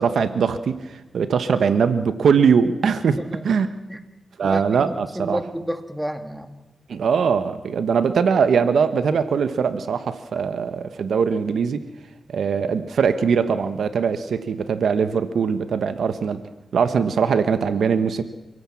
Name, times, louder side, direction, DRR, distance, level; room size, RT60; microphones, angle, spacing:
voice 1, 0.0-3.2 3.4-3.7 4.4-5.4 6.9-11.8 12.3-16.4 16.7-18.2, right 6 dB, 80° right, 11 dB, 1.2 m, -21 dB
voice 2, 3.2-3.5 3.9-4.0 4.4-6.6, equal, 5° right, 7 dB, 2.2 m, -31 dB
28.0 x 17.5 x 7.2 m, 1.1 s
cardioid pair, 60°, 0 cm